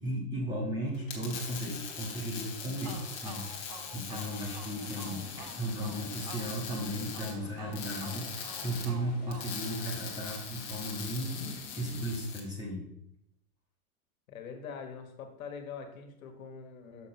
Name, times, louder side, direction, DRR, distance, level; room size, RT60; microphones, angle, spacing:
voice 1, 0.0-12.8, right 1 dB, 10° right, -3 dB, 1.0 m, -36 dB
sound 1, 0.9-12.4, left 7 dB, 25° left, 1.2 m, -42 dB
sound 2, 2.8-10.4, right 4 dB, 30° right, 0.5 m, -49 dB
Thunder, 4.1-12.1, left 7 dB, 90° left, 1.0 m, -50 dB
voice 2, 14.3-17.1, left 6 dB, 65° left, 5 dB, 1.6 m, -43 dB
6.6 x 4.5 x 5.9 m, 0.75 s
supercardioid pair, 175°, 44 cm